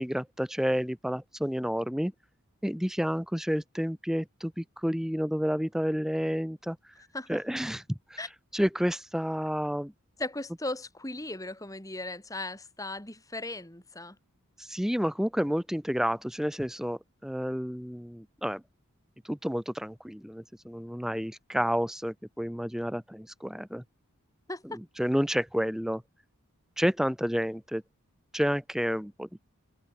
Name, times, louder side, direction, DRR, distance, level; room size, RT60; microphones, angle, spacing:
voice 1, 0.0-2.1 2.6-6.8 7.3-8.2 8.5-9.9 14.6-18.6 19.2-23.8 24.7-26.0 26.8-27.8 28.3-29.4, equal, ahead, 0.9 m, -30 dB
voice 2, 10.2-14.2 24.5-24.8, left 2 dB, 15° left, 2.7 m, -37 dB
head